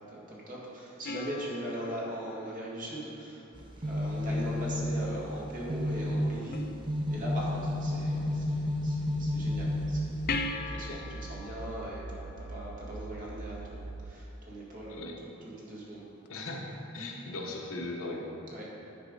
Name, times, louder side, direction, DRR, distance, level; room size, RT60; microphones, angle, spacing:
voice 1, 0.0-3.4 3.8-6.6 7.1-15.1 15.6-16.0 18.5-18.7, equal, 40° right, -5 dB, 1.8 m, -40 dB
sound 1, 1.0-3.7 6.5-7.5 10.3-13.2 16.3-16.4, left 3 dB, 45° left, 0.4 m, -40 dB
sound 2, 3.6-10.5, left 1 dB, 25° right, 0.6 m, -32 dB
sound 3, 9.1-14.1, right 3 dB, 90° right, 0.5 m, -43 dB
voice 2, 16.3-18.4, left 2 dB, 80° left, -1 dB, 1.1 m, -39 dB
10.0 x 4.4 x 5.3 m, 2.8 s
head